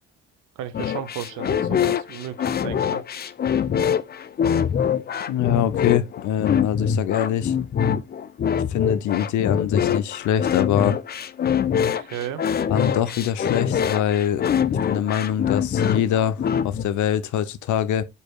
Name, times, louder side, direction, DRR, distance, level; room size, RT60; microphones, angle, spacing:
voice 1, 0.6-3.0 11.7-12.4, right 10 dB, 85° right, 0.7 m, -34 dB
sound 1, 0.7-16.8, left 8 dB, 35° left, 0.4 m, -24 dB
voice 2, 5.3-7.5 8.5-11.0 12.7-18.0, left 10 dB, 75° left, 0.6 m, -24 dB
5.1 x 4.3 x 2.3 m
cardioid pair, 90°, 30 cm